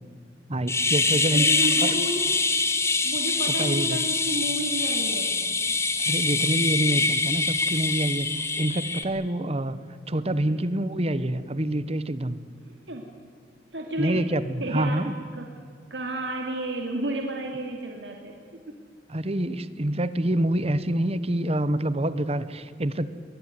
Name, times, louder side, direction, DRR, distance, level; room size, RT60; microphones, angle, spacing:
voice 1, 0.5-1.5 1.8-1.9 3.6-4.0 6.1-9.8 10.1-12.4 14.0-15.1 19.1-23.1, right 1 dB, 35° right, 15 dB, 1.1 m, -26 dB
sound 1, 0.7-9.0, left 3 dB, 15° left, 1.4 m, -24 dB
voice 2, 1.3-2.3 3.0-5.4 10.4-10.6 12.6-13.1 13.7-14.3 14.6-15.5 15.9-18.8, right 1 dB, 80° right, 2 dB, 2.6 m, -32 dB
22.5 x 20.0 x 9.6 m, 2.2 s
head